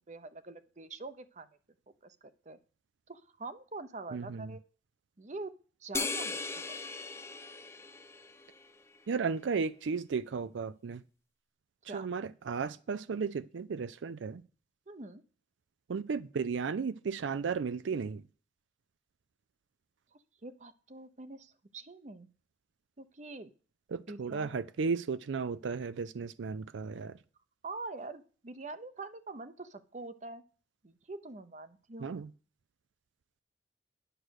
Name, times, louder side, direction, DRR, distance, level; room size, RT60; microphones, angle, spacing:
voice 1, 0.0-1.5 2.0-2.6 3.1-4.6 5.2-5.5 5.8-6.8 11.9-12.1 14.9-15.2 20.1-22.3 23.0-23.5 23.9-24.5 27.6-30.4 30.8-32.1, right 3 dB, 40° right, 0.7 m, -45 dB
voice 2, 4.1-4.5 9.1-11.0 11.9-14.4 15.9-18.2 23.9-27.2 32.0-32.3, right 5 dB, 85° right, 0.4 m, -34 dB
sound 1, 5.9-8.7, left 4 dB, 15° left, 0.6 m, -38 dB
10.0 x 6.3 x 6.4 m
head